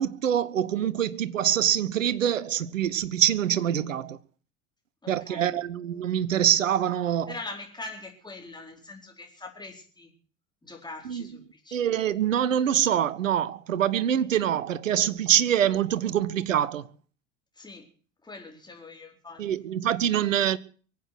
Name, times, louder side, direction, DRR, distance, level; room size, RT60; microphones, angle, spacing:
voice 1, 0.0-4.2 5.1-7.3 11.0-11.3 11.7-16.9 19.4-20.6, right 10 dB, 75° right, 0.9 m, -25 dB
voice 2, 5.0-5.6 7.3-10.1 10.6-11.9 17.6-17.9 18.2-19.4, left 2 dB, 10° left, 4.4 m, -42 dB
23.5 x 8.5 x 6.1 m
figure-of-eight pair, 75°, 39 cm